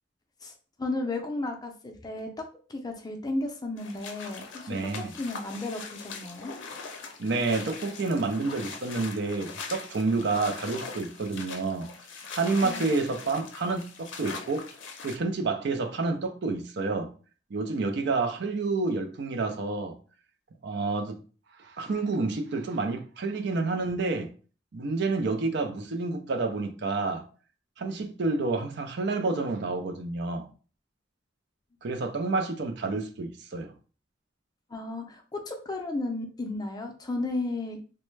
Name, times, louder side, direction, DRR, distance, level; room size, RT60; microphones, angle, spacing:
voice 1, 0.4-6.5 12.6-12.9 34.7-37.8, left 2 dB, 20° left, 0.5 m, -34 dB
sound 1, 3.8-15.2, left 5 dB, 75° left, 0.6 m, -41 dB
voice 2, 4.7-5.1 7.2-11.9 12.3-14.7 15.0-17.1 17.5-20.0 20.6-21.2 21.6-24.3 24.7-27.2 27.8-30.5 31.8-33.7, right 3 dB, 60° right, 0.4 m, -29 dB
3.1 x 2.2 x 3.1 m
head